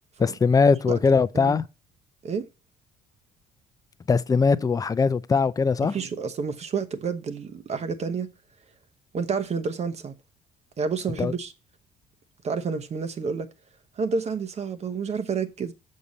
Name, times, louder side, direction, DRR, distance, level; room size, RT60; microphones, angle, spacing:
voice 1, 0.2-1.6 4.1-5.9 11.2-11.3, left 5 dB, 20° left, 0.5 m, -21 dB
voice 2, 5.8-8.3 9.1-10.1 10.8-11.5 12.4-13.5 14.0-15.7, right 5 dB, 40° right, 0.9 m, -29 dB
7.1 x 6.6 x 4.1 m
cardioid pair, 110°, 17 cm